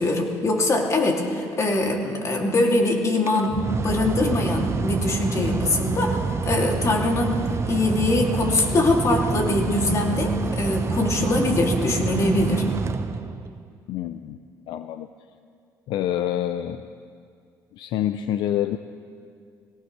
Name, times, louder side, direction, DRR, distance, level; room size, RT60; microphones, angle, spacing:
voice 1, 0.0-12.7, left 2 dB, 40° left, 0 dB, 2.7 m, -23 dB
Mechanical fan, 3.2-13.7, right 5 dB, 35° right, 0.7 m, -27 dB
voice 2, 13.9-14.4 14.7-15.1 15.9-16.8 17.7-18.8, left 11 dB, 75° left, 10 dB, 0.5 m, -27 dB
22.5 x 18.0 x 3.3 m, 2.2 s
supercardioid pair, 80°, 8 cm